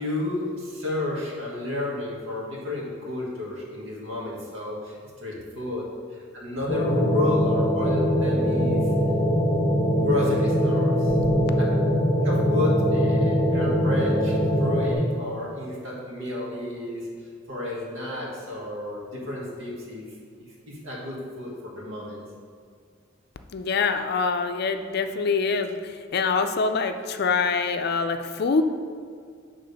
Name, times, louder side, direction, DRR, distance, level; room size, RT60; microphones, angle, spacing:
voice 1, 0.0-8.9 9.9-11.2 12.2-17.1 17.5-20.1 20.7-22.2, left 2 dB, 85° right, -3 dB, 1.7 m, -31 dB
sound 1, 6.7-14.9, equal, 20° left, 0.9 m, -22 dB
voice 2, 23.5-28.6, left 4 dB, 55° left, 8 dB, 0.4 m, -25 dB
6.7 x 3.7 x 5.3 m, 2.1 s
head